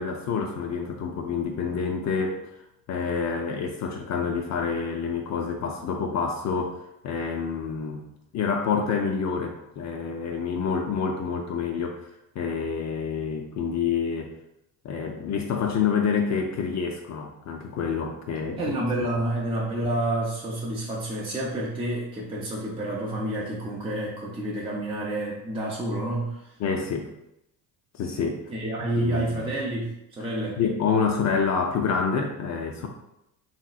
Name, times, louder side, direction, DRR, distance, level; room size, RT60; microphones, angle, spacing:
voice 1, 0.0-2.6 2.9-8.0 8.3-12.1 12.4-14.3 14.8-18.7 26.6-27.1 27.9-28.4 29.0-29.5 30.6-32.9, left 5 dB, 40° left, 3 dB, 0.4 m, -27 dB
voice 2, 18.6-26.5 28.5-30.6, right 1 dB, 15° right, -4 dB, 0.5 m, -29 dB
3.1 x 2.8 x 2.4 m, 0.84 s
supercardioid pair, 95°, 44 cm